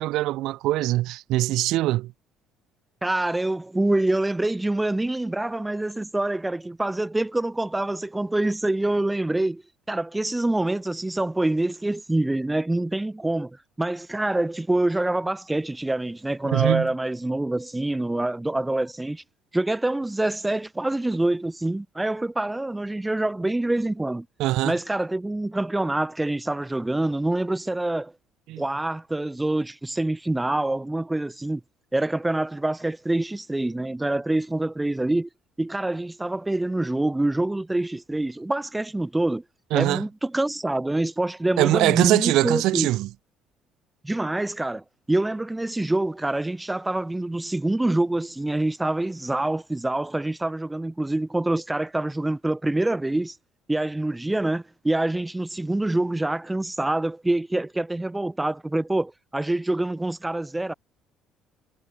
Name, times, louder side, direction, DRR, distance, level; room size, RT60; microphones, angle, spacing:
voice 1, 0.0-2.1 16.5-16.9 24.4-24.7 28.5-28.6 39.7-40.0 41.6-43.1, right 16 dB, 60° right, 1.0 m, -22 dB
voice 2, 3.0-9.6 9.9-19.2 19.5-24.3 24.6-28.1 28.6-31.6 31.9-35.3 35.6-39.4 39.7-42.9 44.0-53.4 53.7-60.7, right 2 dB, 10° right, 0.8 m, -26 dB
figure-of-eight pair, 50°, 0 cm